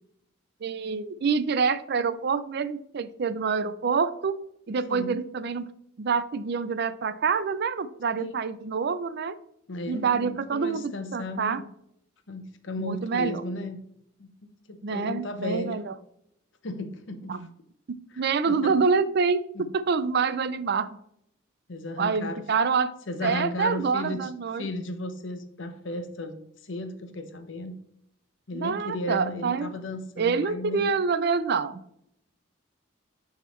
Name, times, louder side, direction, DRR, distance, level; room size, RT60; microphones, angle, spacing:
voice 1, 0.6-4.4 4.7-5.7 6.0-9.4 9.9-11.6 12.8-13.4 14.8-15.9 17.3-17.5 17.9-19.4 19.7-21.0 22.0-22.9 23.2-24.7 28.5-29.7 30.2-32.0, right 5 dB, 55° right, 14 dB, 0.4 m, -26 dB
voice 2, 9.7-11.6 12.3-13.8 14.2-14.3 14.7-15.8 16.6-17.5 18.1-18.7 19.5-19.7 21.7-22.4 23.1-24.3 24.6-27.7 28.5-30.9, left 1 dB, 65° left, 8 dB, 0.9 m, -35 dB
11.0 x 3.7 x 3.1 m, 0.75 s
head